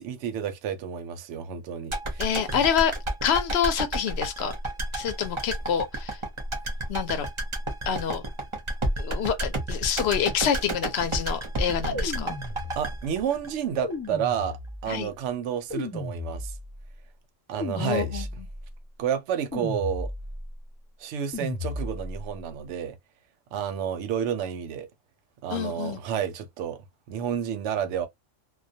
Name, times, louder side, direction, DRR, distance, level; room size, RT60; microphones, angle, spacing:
voice 1, 0.0-2.6 12.7-16.5 17.5-18.3 19.0-20.1 21.0-23.0 23.5-24.9 25.4-26.8 27.1-28.1, right 8 dB, 70° right, 0.8 m, -30 dB
sound 1, 1.9-14.1 14.4-14.5, right 1 dB, 35° right, 0.5 m, -31 dB
voice 2, 2.2-2.9 3.2-4.5 4.9-6.2 6.9-7.3 7.9-8.2 9.0-12.4 14.9-15.1 17.8-18.3 25.5-26.0, left 8 dB, 65° left, 0.7 m, -27 dB
sound 2, 11.9-13.1 13.8-15.0 15.7-16.8 17.6-18.6 19.5-20.5 21.3-22.2, left 2 dB, 10° left, 0.9 m, -34 dB
2.3 x 2.1 x 2.6 m
omnidirectional pair, 1.3 m